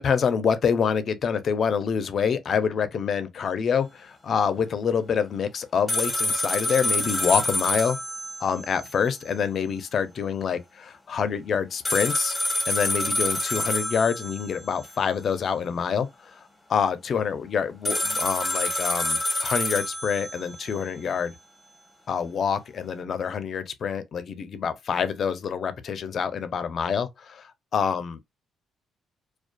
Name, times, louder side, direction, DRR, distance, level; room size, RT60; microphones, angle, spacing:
voice 1, 0.0-8.0 8.4-12.3 12.7-16.4 16.7-21.3 22.1-28.2, left 6 dB, 55° left, 0.4 m, -26 dB
sound 1, 5.9-8.9 9.2-9.3 11.8-14.9 17.9-20.9, left 1 dB, 15° left, 0.7 m, -27 dB
2.4 x 2.2 x 2.2 m
cardioid pair, 90°, 0 cm